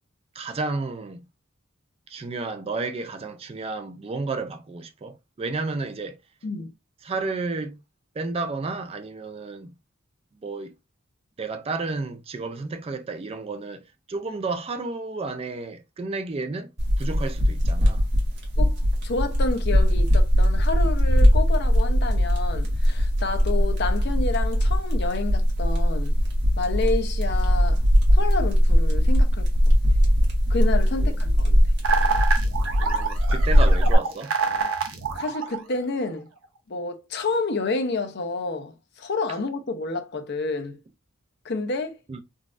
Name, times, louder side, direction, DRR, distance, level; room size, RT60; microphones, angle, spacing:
voice 1, 0.3-1.2 2.1-6.2 7.0-7.8 8.2-9.7 10.4-10.7 11.4-16.7 17.0-18.0 31.0-31.7 32.8-34.3 42.1-42.2, right 3 dB, 30° right, 0.3 m, -32 dB
sound 1, 16.8-33.9, equal, 55° right, 1.2 m, -20 dB
voice 2, 19.0-26.2 26.6-27.8 28.1-29.8 30.5-31.5 35.2-36.3 36.7-40.8 41.4-42.0, left 3 dB, 55° left, 0.6 m, -29 dB
sound 2, 31.8-36.1, right 4 dB, 75° right, 0.7 m, -27 dB
3.9 x 2.4 x 2.4 m
head